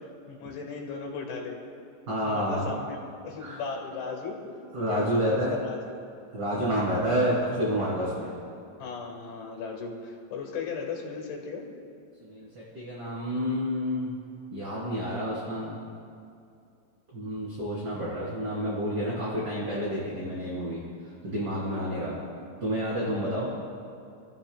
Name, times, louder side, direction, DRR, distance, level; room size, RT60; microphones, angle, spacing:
voice 1, 0.0-1.6 2.2-4.4 4.9-5.8 6.5-6.7 8.8-11.7 17.9-18.0 21.3-21.8 23.0-23.3, left 5 dB, 80° left, 0 dB, 4.3 m, -37 dB
voice 2, 2.1-2.7 3.4-3.6 4.7-5.6 6.3-8.4 12.2-14.1 14.5-15.8 17.1-22.2 22.6-23.5, equal, 25° right, -8 dB, 3.0 m, -29 dB
29.0 x 14.5 x 2.2 m, 2.5 s
omnidirectional pair, 5.4 m